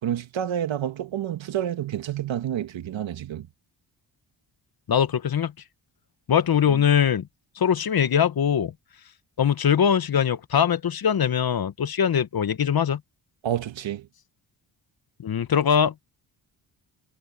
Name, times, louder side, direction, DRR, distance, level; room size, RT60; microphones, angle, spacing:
voice 1, 0.0-3.5 6.7-6.8 13.4-14.1, right 10 dB, 70° right, 2.1 m, -29 dB
voice 2, 4.9-5.5 6.3-7.3 7.6-8.7 9.4-13.0 15.2-15.9, left 8 dB, 50° left, 1.3 m, -22 dB
supercardioid pair, 60°, 47 cm